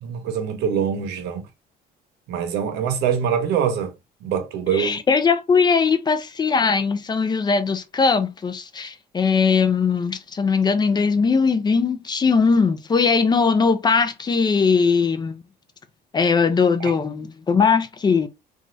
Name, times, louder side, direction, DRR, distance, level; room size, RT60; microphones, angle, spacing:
voice 1, 0.0-1.4 2.3-3.9 4.2-5.0 16.8-16.9, right 8 dB, 85° right, 0.7 m, -24 dB
voice 2, 4.7-15.4 16.1-18.3, left 5 dB, 25° left, 0.4 m, -20 dB
3.0 x 2.3 x 2.6 m
cardioid pair, 110°, 17 cm